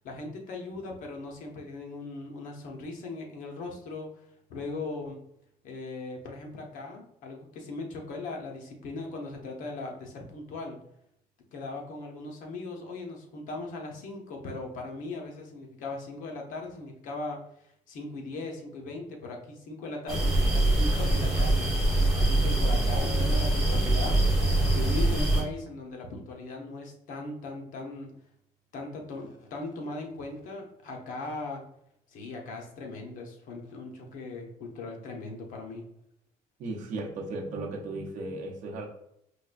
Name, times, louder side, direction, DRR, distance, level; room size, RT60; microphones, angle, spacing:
voice 1, 0.0-4.1 4.5-5.2 5.6-10.8 11.5-24.2 24.7-28.1 28.7-31.6 32.1-35.8, left 2 dB, 60° left, 2 dB, 0.7 m, -39 dB
sound 1, 20.1-25.4, right 1 dB, ahead, 1.1 m, -24 dB
voice 2, 36.6-38.9, right 2 dB, 55° right, 0 dB, 0.6 m, -35 dB
4.7 x 2.2 x 2.4 m, 0.74 s
cardioid pair, 160°, 15 cm